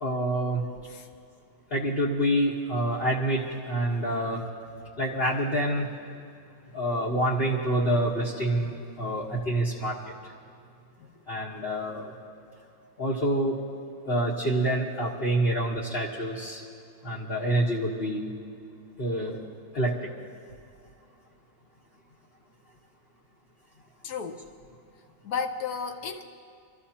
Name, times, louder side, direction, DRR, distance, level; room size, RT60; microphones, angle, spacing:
voice 1, 0.0-0.6 1.7-4.4 5.0-5.9 6.7-9.9 11.3-12.1 13.0-13.6 14.1-16.6 17.0-18.3 19.0-19.4 19.7-19.9, right 1 dB, 35° left, -5 dB, 1.3 m, -27 dB
voice 2, 24.0-24.4 25.2-26.3, left 6 dB, 65° left, 5 dB, 1.0 m, -33 dB
26.0 x 14.0 x 2.9 m, 2.5 s
omnidirectional pair, 2.1 m